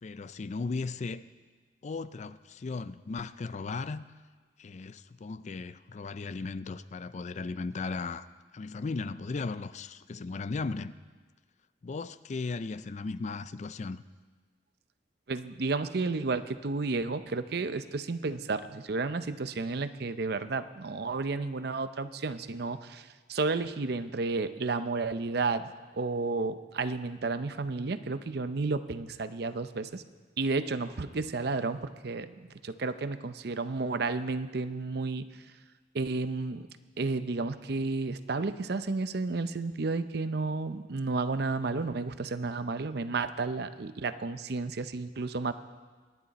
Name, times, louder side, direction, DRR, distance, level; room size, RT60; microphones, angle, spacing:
voice 1, 0.0-1.2 1.8-4.1 4.6-8.3 8.5-10.9 11.8-14.0, left 4 dB, 40° left, 0.4 m, -36 dB
voice 2, 15.3-30.0 30.4-35.3 35.9-36.6 37.0-45.5, right 3 dB, 65° right, 0.6 m, -32 dB
24.0 x 10.5 x 4.2 m
head